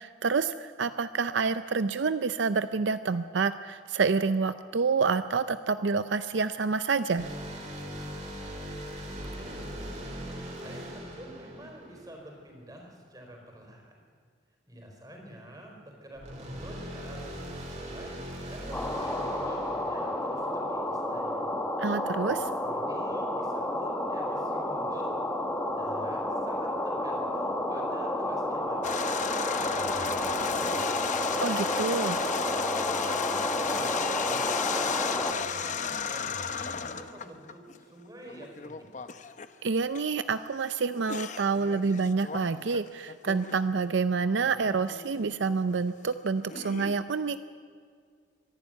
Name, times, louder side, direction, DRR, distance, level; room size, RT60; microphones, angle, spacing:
voice 1, 0.0-7.3 21.8-22.5 31.4-32.2 39.6-47.4, right 4 dB, 70° right, 12 dB, 0.5 m, -28 dB
sound 1, 7.2-12.6 16.1-20.9, equal, 35° right, 3.5 m, -40 dB
voice 2, 9.3-9.9 10.2-14.0 14.7-18.2 18.5-21.4 22.2-22.3 22.6-25.2 25.8-31.0 32.2-38.9, right 1 dB, 20° right, 1 dB, 4.5 m, -48 dB
sound 2, 18.7-35.3, left 1 dB, 10° left, 1.3 m, -31 dB
sound 3, 28.8-37.8 38.3-39.5 39.9-40.1 40.9-43.9 44.4-45.1 45.3-46.9, left 6 dB, 40° left, 0.8 m, -34 dB
25.0 x 11.5 x 9.2 m, 2.1 s
head